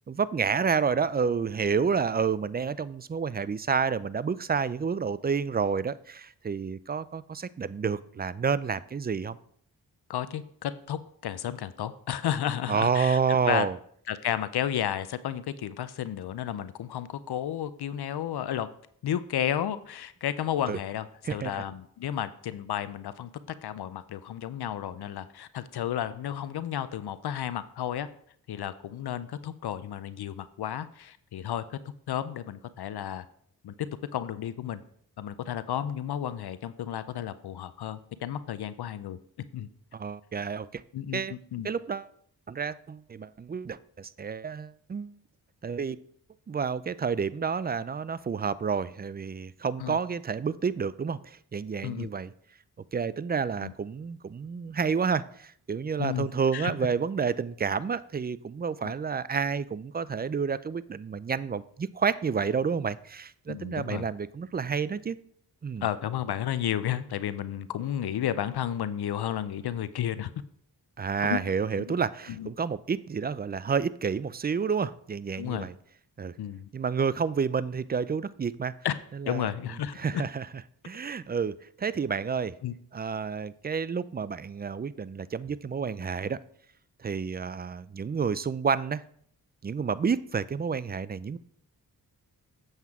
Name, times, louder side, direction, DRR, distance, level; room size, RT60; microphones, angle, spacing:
voice 1, 0.1-9.4 12.7-13.8 20.7-20.8 21.2-21.5 39.9-40.8 41.1-41.3 41.6-42.1 42.5-45.1 45.6-46.0 46.5-52.3 52.9-65.2 65.6-65.9 71.0-75.7 76.2-76.3 76.7-78.7 79.1-79.5 80.0-80.5 80.8-82.5 82.9-86.4 87.0-89.0 89.6-91.4, right 6 dB, 25° right, 17 dB, 0.4 m, -29 dB
voice 2, 10.1-13.7 14.1-18.7 19.0-23.3 23.6-28.1 28.5-31.8 32.1-33.3 33.6-33.7 34.1-34.8 35.2-39.2 39.5-39.7 40.9-41.7 49.8-50.0 51.8-52.1 53.6-53.7 56.0-56.3 56.5-56.7 63.5-64.1 65.8-70.3 71.2-71.4 71.9-72.0 72.3-72.5 75.3-75.7 76.4-76.7 78.8-79.0 79.3-80.2 82.6-82.7, left 10 dB, 80° left, 14 dB, 0.5 m, -32 dB
7.9 x 7.3 x 3.6 m, 0.65 s
cardioid pair, 55°, 38 cm